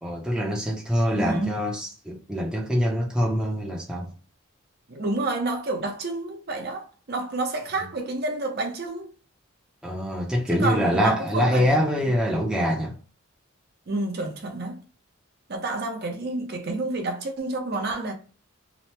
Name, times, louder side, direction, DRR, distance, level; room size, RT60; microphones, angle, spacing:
voice 1, 0.0-4.1 9.8-12.9, equal, 5° right, 0.5 m, -24 dB
voice 2, 1.1-1.6 4.9-9.1 10.5-12.1 13.9-14.8 15.5-18.1, right 2 dB, 50° right, 0.6 m, -29 dB
2.9 x 2.0 x 3.1 m
head